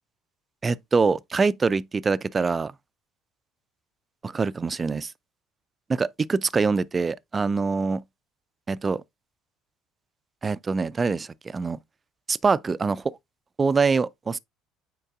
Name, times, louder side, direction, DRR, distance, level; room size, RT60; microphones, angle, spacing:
voice 1, 0.6-2.7 4.2-5.1 5.9-8.0 8.7-9.0 10.4-11.8 12.3-13.0 13.6-14.4, right 4 dB, 25° right, 0.3 m, -24 dB
8.9 x 4.5 x 2.4 m
figure-of-eight pair, 60°, 0 cm